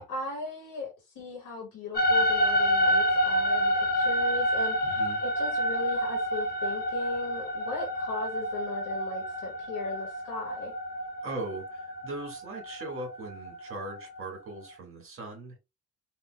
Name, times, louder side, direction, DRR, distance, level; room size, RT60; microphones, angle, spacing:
voice 1, 0.0-4.8 5.2-10.7, left 2 dB, 85° left, 1.1 m, -37 dB
sound 1, 1.9-14.2, equal, 30° left, 0.7 m, -28 dB
voice 2, 4.8-5.2 11.2-15.6, right 2 dB, 45° right, 1.6 m, -39 dB
3.7 x 2.3 x 2.2 m
cardioid pair, 90°, 30 cm